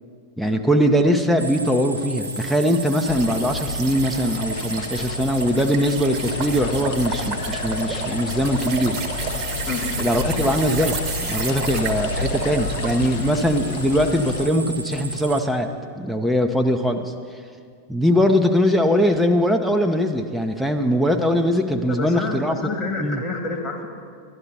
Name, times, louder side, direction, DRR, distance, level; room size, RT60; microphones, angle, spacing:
voice 1, 0.4-9.0 9.4-9.5 10.0-15.7 16.0-17.1 17.9-22.6 23.0-23.2, equal, ahead, 4 dB, 0.7 m, -21 dB
sound 1, 1.4-15.4, right 2 dB, 80° right, 0.6 m, -34 dB
sound 2, 2.2-13.0, right 6 dB, 35° right, 1.1 m, -33 dB
sound 3, 3.1-14.5, left 5 dB, 50° left, 0.8 m, -31 dB
voice 2, 21.9-23.9, left 4 dB, 25° left, 1 dB, 1.8 m, -29 dB
12.0 x 11.5 x 5.5 m, 2.2 s
figure-of-eight pair, 90°, 0 cm